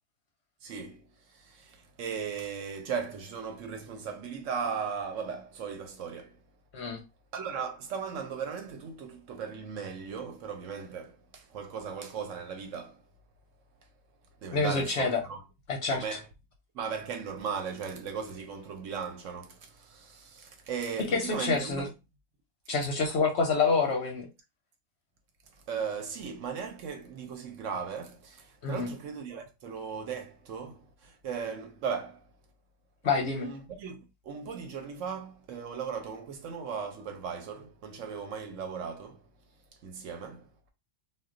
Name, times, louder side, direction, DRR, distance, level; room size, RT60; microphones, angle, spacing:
voice 1, 0.6-6.4 7.3-13.0 14.4-15.4 15.9-16.3 16.7-21.9 25.7-32.3 33.1-39.3 39.8-40.5, right 6 dB, 70° right, 0.9 m, -37 dB
voice 2, 14.5-15.2 15.7-16.0 21.1-21.9 22.7-24.3 28.6-28.9 33.0-33.5, left 4 dB, 60° left, 0.7 m, -27 dB
2.2 x 2.2 x 3.6 m
omnidirectional pair, 1.5 m